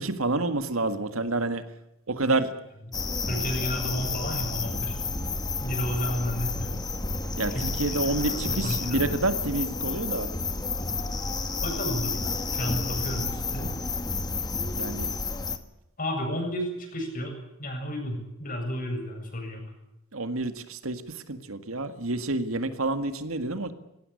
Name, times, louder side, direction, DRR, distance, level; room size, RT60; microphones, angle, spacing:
voice 1, 0.0-1.6 2.1-2.5 7.4-10.3 14.7-15.1 20.1-21.0 21.3-23.7, right 2 dB, 80° right, 10 dB, 1.9 m, -28 dB
sound 1, 2.9-15.6, left 3 dB, 20° left, 1.4 m, -30 dB
voice 2, 3.3-5.0 5.6-6.8 7.5-9.1 11.6-12.2 12.5-13.7 16.0-19.6, equal, 40° left, 2 dB, 7.8 m, -32 dB
19.5 x 17.5 x 9.9 m, 0.88 s
head